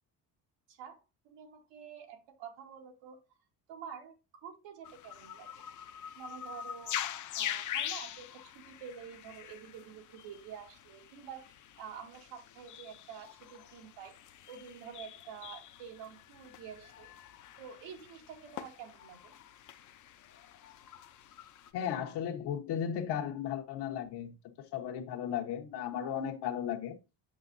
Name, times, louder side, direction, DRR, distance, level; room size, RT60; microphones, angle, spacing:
voice 1, 0.7-3.2 3.7-5.5 6.1-7.0 7.3-11.5 11.8-14.1 14.5-17.1 17.6-19.3, right 7 dB, 85° right, 1.9 m, -48 dB
sound 1, 4.8-21.7, left 11 dB, 45° left, 0.7 m, -44 dB
voice 2, 21.7-27.0, left 9 dB, 70° left, 1.3 m, -35 dB
7.8 x 6.4 x 2.7 m
cardioid pair, 165°, 42 cm